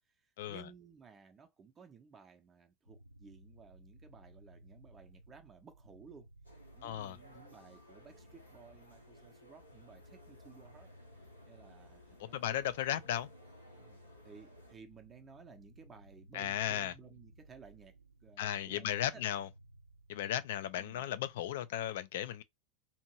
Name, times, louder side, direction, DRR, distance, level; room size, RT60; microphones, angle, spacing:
voice 1, 0.1-6.3 6.7-10.9 11.5-12.6 13.8-14.0 14.2-18.0 18.2-19.2 20.8-21.1, right 6 dB, 20° right, 0.6 m, -57 dB
sound 1, 2.9-20.4, right 1 dB, 80° right, 0.4 m, -59 dB
sound 2, 6.4-14.8, left 1 dB, 90° left, 1.0 m, -59 dB
voice 2, 6.8-7.2 12.2-13.3 16.3-16.9 18.4-19.5 20.1-22.4, left 11 dB, 55° left, 0.3 m, -35 dB
2.8 x 2.6 x 2.9 m
figure-of-eight pair, 90°, 0 cm